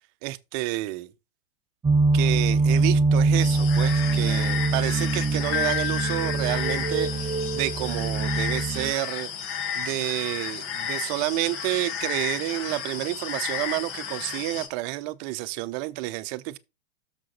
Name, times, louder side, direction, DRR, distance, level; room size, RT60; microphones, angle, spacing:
voice 1, 0.2-1.1 2.1-9.3 9.7-16.6, right 18 dB, 45° right, 0.8 m, -30 dB
sound 1, 1.8-8.9, right 3 dB, 15° right, 1.0 m, -23 dB
sound 2, 3.4-14.7, left 8 dB, 40° left, 1.7 m, -33 dB
Piano, 5.5-7.6, left 9 dB, 65° left, 0.7 m, -33 dB
7.5 x 7.0 x 4.0 m
hypercardioid pair, 110°, 31 cm